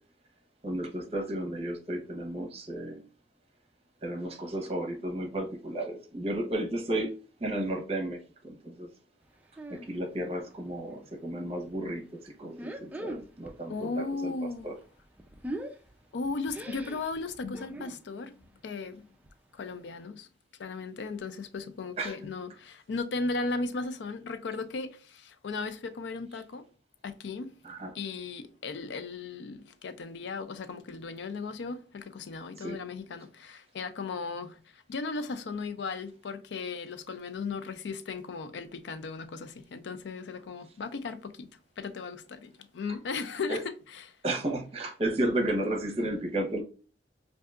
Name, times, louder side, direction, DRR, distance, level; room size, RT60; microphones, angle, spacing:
voice 1, 0.6-3.0 4.0-7.1 7.4-8.2 8.4-8.9 9.7-14.3 14.6-14.7 22.0-22.1 27.6-27.9 32.6-32.8 43.5-43.6 44.2-46.6, right 1 dB, 35° right, 0.9 m, -33 dB
sound 1, 9.6-10.0 10.3-11.1 11.5-11.7 12.5-13.7 13.9-18.0 18.4-18.7 18.9-19.0 19.2-19.3 19.9-20.0, right 1 dB, 10° right, 0.3 m, -42 dB
voice 2, 13.7-14.8 16.1-18.4 18.6-19.1 19.5-20.3 20.6-26.7 27.0-27.6 27.9-44.2, left 4 dB, 80° left, 0.4 m, -36 dB
5.3 x 2.6 x 2.3 m
head